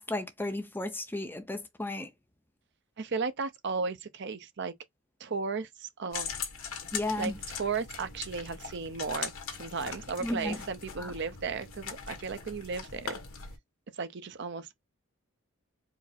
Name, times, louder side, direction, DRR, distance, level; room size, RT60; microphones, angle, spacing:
voice 1, 0.0-2.1 6.9-7.4 10.2-10.6 11.0-11.1, left 1 dB, 10° left, 0.6 m, -34 dB
voice 2, 3.0-4.7 5.2-6.3 7.2-9.3 9.6-13.2 13.9-14.7, right 5 dB, 55° right, 0.6 m, -35 dB
sound 1, 6.1-13.6, left 6 dB, 85° left, 1.4 m, -40 dB
4.7 x 2.0 x 4.2 m
head